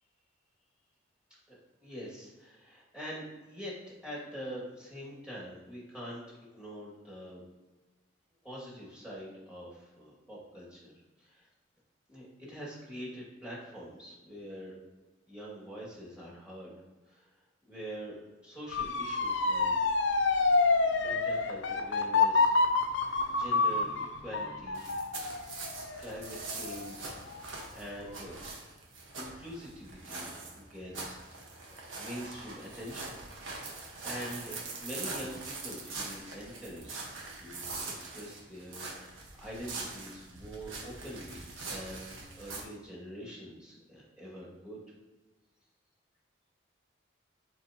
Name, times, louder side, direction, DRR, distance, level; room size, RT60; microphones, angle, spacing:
voice 1, 1.5-3.7 4.0-7.4 8.4-10.9 11.2-11.5 12.1-14.8 15.3-16.8 17.1-17.3 17.7-19.8 21.0-22.5 23.3-24.8 26.0-27.4 27.7-28.4 29.1-33.2 33.6-37.1 37.4-44.8, equal, 5° right, -6 dB, 2.3 m, -45 dB
Motor vehicle (road) / Siren, 18.7-27.6 28.0-28.5, left 3 dB, 70° left, 0.6 m, -28 dB
sound 1, 24.7-42.6, right 3 dB, 80° right, 1.4 m, -43 dB
11.0 x 4.8 x 3.0 m, 1.2 s
head